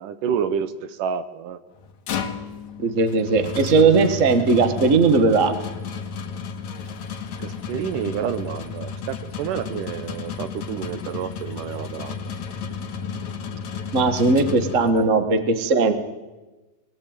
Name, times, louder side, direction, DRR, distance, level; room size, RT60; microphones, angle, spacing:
voice 1, 0.0-1.6 7.4-12.2, right 8 dB, 70° right, 13 dB, 2.3 m, -29 dB
sound 1, 1.8-15.2, left 5 dB, 60° left, 2.7 m, -33 dB
voice 2, 2.8-5.5 13.9-15.9, right 4 dB, 45° right, 9 dB, 1.0 m, -18 dB
23.0 x 18.0 x 9.0 m, 1.2 s
omnidirectional pair, 4.1 m